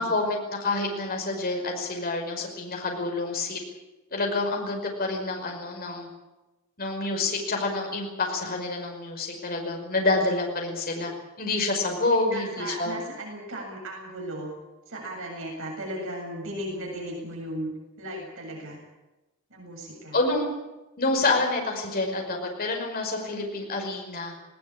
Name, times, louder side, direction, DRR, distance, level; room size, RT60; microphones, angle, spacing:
voice 1, 0.0-3.6 4.1-6.1 6.8-11.1 11.4-13.0 20.1-20.5 21.0-24.3, left 2 dB, 45° left, 1 dB, 5.5 m, -28 dB
voice 2, 12.0-14.5 14.9-17.7 18.0-18.8 19.5-20.2 21.3-21.4, right 1 dB, 65° right, 0 dB, 7.5 m, -36 dB
20.0 x 19.0 x 8.9 m, 1.1 s
head